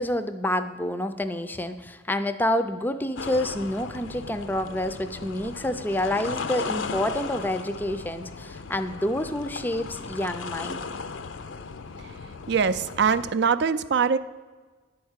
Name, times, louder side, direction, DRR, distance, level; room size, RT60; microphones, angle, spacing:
voice 1, 0.0-10.8, left 1 dB, 10° left, 10 dB, 0.4 m, -28 dB
sound 1, 3.2-13.3, left 4 dB, 75° left, 0.5 m, -36 dB
voice 2, 12.5-14.2, right 6 dB, 60° right, 13 dB, 0.4 m, -22 dB
10.0 x 4.7 x 8.0 m, 1.4 s
head